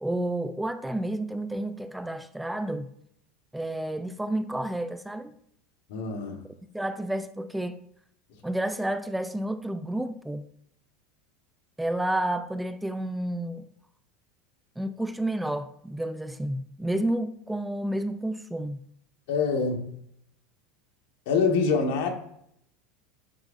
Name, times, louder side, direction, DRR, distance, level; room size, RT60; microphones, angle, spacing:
voice 1, 0.0-2.9 3.5-5.3 6.7-7.8 8.4-10.5 11.8-13.7 14.8-18.8, right 1 dB, 5° right, 0.3 m, -30 dB
voice 2, 5.9-6.4 19.3-19.9 21.3-22.1, left 5 dB, 70° left, 1.4 m, -25 dB
9.2 x 4.7 x 2.6 m
supercardioid pair, 120°, 0 cm